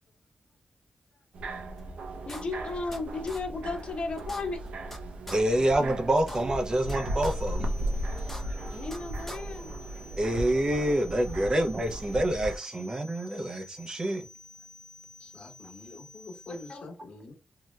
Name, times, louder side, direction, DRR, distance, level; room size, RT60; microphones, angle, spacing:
sound 1, 1.3-12.6, right 1 dB, 85° right, 0.6 m, -36 dB
sound 2, 1.8-1.9 2.3-3.0 3.3-3.4 3.8-3.9 4.2-5.0 5.3-5.4 5.8-5.9 6.2-7.0 7.2-7.3 7.8-7.9 8.2-9.0 9.3-9.4, left 1 dB, 10° left, 0.7 m, -41 dB
voice 1, 2.3-4.6 8.7-9.7 16.5-16.9, left 3 dB, 55° left, 0.8 m, -34 dB
voice 2, 5.3-7.7 10.2-14.3, right 1 dB, 35° right, 0.5 m, -27 dB
sound 3, 6.7-16.7, left 3 dB, 10° right, 1.2 m, -51 dB
voice 3, 15.2-17.3, left 2 dB, 80° left, 1.1 m, -47 dB
3.1 x 2.7 x 2.3 m
wide cardioid pair, 95°, 2 cm